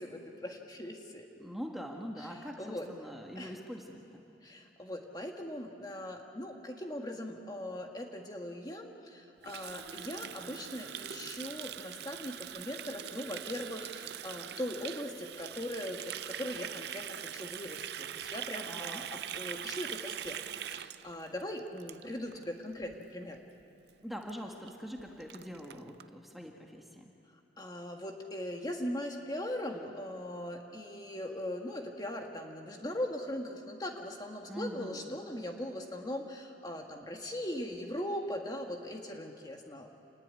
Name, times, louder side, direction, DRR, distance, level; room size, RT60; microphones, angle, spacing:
voice 1, 0.0-1.3 2.2-2.9 3.3-3.6 4.4-20.4 20.7-23.4 27.6-39.9, left 1 dB, 20° left, 2 dB, 1.6 m, -40 dB
voice 2, 1.4-2.6 2.9-4.2 18.7-19.0 24.0-27.1 34.5-35.1, equal, ahead, 1 dB, 1.7 m, -43 dB
Water tap faucet, 9.4-22.4 22.7-23.0 23.3-23.6 23.9-24.0 24.2-24.3 24.7-24.8 25.0-26.0, right 10 dB, 60° right, 0.5 m, -42 dB
27.5 x 19.0 x 9.7 m, 2.7 s
head